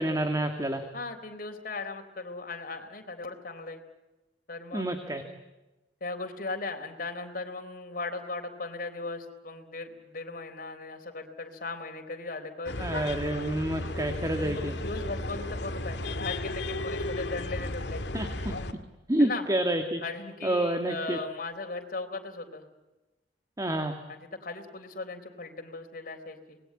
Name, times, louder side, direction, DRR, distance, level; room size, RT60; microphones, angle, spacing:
voice 1, 0.0-0.8 4.7-5.2 12.8-14.7 18.1-18.5 19.1-20.0 20.4-21.2 23.6-24.0, right 1 dB, 20° right, 6 dB, 2.0 m, -28 dB
voice 2, 0.9-3.8 4.5-5.3 6.0-13.1 14.4-18.0 19.2-19.5 20.0-22.7 24.1-26.6, left 3 dB, 55° left, 5 dB, 3.8 m, -38 dB
sound 1, 12.7-18.7, left 1 dB, 70° left, 2.2 m, -34 dB
27.0 x 21.0 x 8.6 m, 1.1 s
head